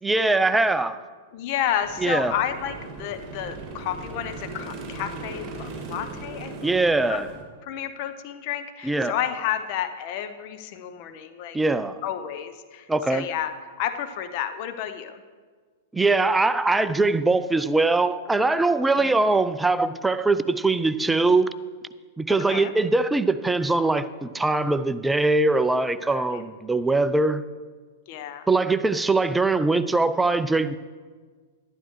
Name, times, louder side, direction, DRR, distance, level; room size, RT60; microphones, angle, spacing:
voice 1, 0.0-1.0 2.0-2.3 6.6-7.3 8.8-9.1 11.5-12.0 12.9-13.3 15.9-21.5 22.2-27.4 28.5-30.8, right 3 dB, 5° right, 0.4 m, -22 dB
voice 2, 1.3-6.7 7.1-7.2 7.6-11.6 12.0-15.2 19.0-19.3 22.3-22.7 26.1-26.4 28.1-28.5, left 10 dB, 45° left, 0.7 m, -31 dB
sound 1, 1.8-7.4, right 3 dB, 30° right, 2.2 m, -38 dB
12.0 x 12.0 x 3.1 m
figure-of-eight pair, 100°, 0 cm